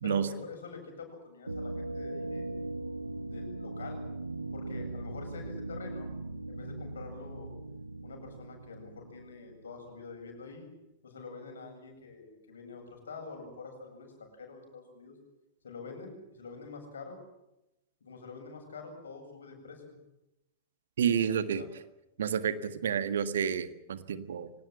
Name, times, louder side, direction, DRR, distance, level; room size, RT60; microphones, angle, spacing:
voice 1, 0.0-2.7 3.3-4.0 4.5-6.1 6.5-7.5 8.0-10.7 11.0-15.2 15.6-17.2 18.0-19.9 21.5-21.7, left 4 dB, 65° left, 4 dB, 7.9 m, -46 dB
sound 1, 1.5-10.1, right 2 dB, 80° right, 1.2 m, -40 dB
voice 2, 21.0-21.6 22.2-24.5, right 8 dB, 60° right, 13 dB, 1.7 m, -30 dB
24.5 x 19.0 x 9.2 m, 0.90 s
figure-of-eight pair, 100°, 0 cm